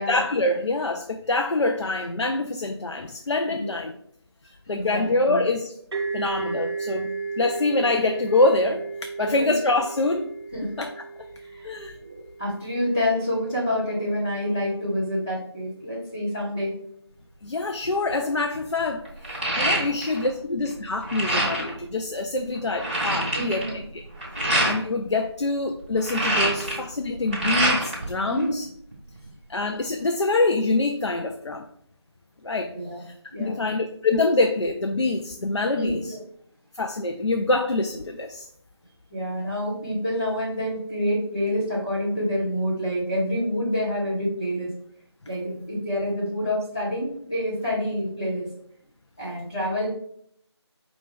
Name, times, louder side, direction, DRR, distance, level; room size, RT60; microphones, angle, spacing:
voice 1, 0.1-3.9 4.7-5.7 6.1-8.9 9.2-10.3 10.8-11.0 11.6-11.9 17.4-23.6 23.9-24.0 24.4-28.7 29.5-31.7 32.4-32.7 33.0-36.1 36.7-38.5, left 2 dB, 85° left, 4 dB, 0.5 m, -25 dB
voice 2, 4.7-5.4 9.2-9.6 10.5-10.7 11.4-11.7 12.0-16.7 19.6-19.7 23.3-23.8 28.3-28.6 32.4-33.0 33.3-33.6 35.8-36.2 39.1-44.7 45.2-48.4 49.2-49.9, equal, 10° left, -12 dB, 0.5 m, -28 dB
sound 1, 5.9-13.4, right 4 dB, 60° right, 1.1 m, -34 dB
sound 2, 17.8-18.1 18.5-20.3 20.6-21.8 22.3-22.4 22.5-24.8 25.8-28.1 28.4-29.3, right 1 dB, 20° right, 1.1 m, -26 dB
5.1 x 2.4 x 3.5 m, 0.68 s
figure-of-eight pair, 165°, 14 cm